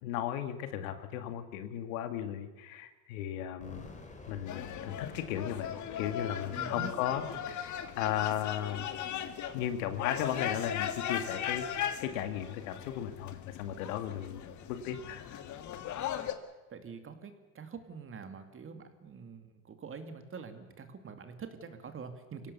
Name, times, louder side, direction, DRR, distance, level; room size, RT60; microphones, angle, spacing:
voice 1, 0.0-3.9 4.3-8.9 9.5-11.7 12.0-15.4, left 10 dB, 70° left, 8 dB, 2.2 m, -36 dB
sound 1, 3.6-14.5, left 3 dB, 15° left, 3.6 m, -55 dB
sound 2, 4.5-16.3, left 10 dB, 45° left, 1.8 m, -38 dB
voice 2, 6.5-6.9 16.7-22.5, right 5 dB, 30° right, 7 dB, 2.6 m, -45 dB
24.0 x 17.0 x 7.0 m, 1.1 s
hypercardioid pair, 100°, 42 cm